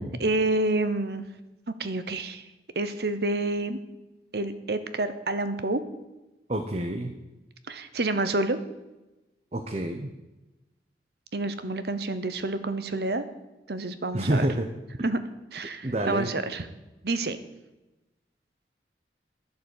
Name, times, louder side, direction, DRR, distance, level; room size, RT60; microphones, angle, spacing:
voice 1, 0.0-1.4 1.8-2.4 2.7-3.8 4.3-5.8 7.7-8.6 11.3-13.2 13.7-14.5 15.0-15.2 15.5-16.7 17.0-17.4, right 2 dB, 65° right, 11 dB, 1.0 m, -28 dB
voice 2, 6.5-7.1 9.5-10.1 14.1-14.7 15.8-16.3, right 1 dB, 35° right, 4 dB, 0.8 m, -27 dB
11.5 x 7.0 x 8.2 m, 1.0 s
head